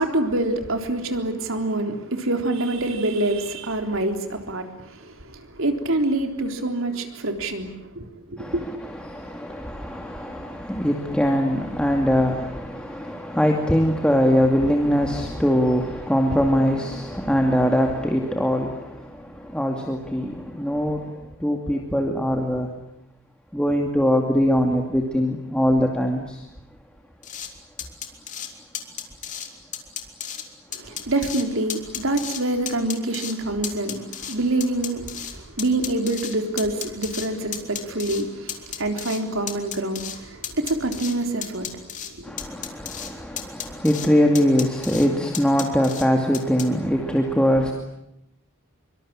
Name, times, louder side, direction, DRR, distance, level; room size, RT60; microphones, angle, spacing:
voice 1, 0.0-8.6 30.7-42.3, right 2 dB, 70° right, 3.7 m, -26 dB
voice 2, 8.4-22.7 23.5-26.5 28.8-28.9 42.2-47.7, equal, 5° left, 2.4 m, -22 dB
sound 1, 27.2-27.5 27.8-28.5 28.7-29.5 29.7-30.4 30.7-31.4 31.7-32.4 32.7-33.3 33.6-35.3 35.6-37.3 37.5-38.2 38.5-39.2 39.5-40.2 40.4-41.1 41.4-42.1 42.4-43.1 43.4-44.1 44.3-45.1 45.3-46.0 46.3-46.6, left 9 dB, 35° left, 3.4 m, -33 dB
26.0 x 24.5 x 8.9 m
head